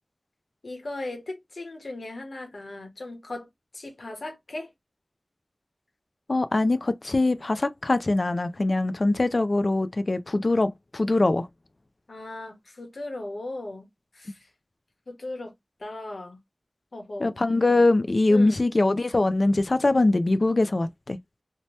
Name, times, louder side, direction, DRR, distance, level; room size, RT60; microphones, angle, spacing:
voice 1, 0.6-3.5 3.7-4.7 12.1-13.8 14.1-14.4 15.1-15.5 15.8-16.4 16.9-17.3 18.3-18.6, left 2 dB, 90° left, 1.0 m, -37 dB
voice 2, 6.3-11.5 17.2-21.2, left 2 dB, 60° left, 0.4 m, -22 dB
2.8 x 2.1 x 3.1 m
wide cardioid pair, 55°, 0 cm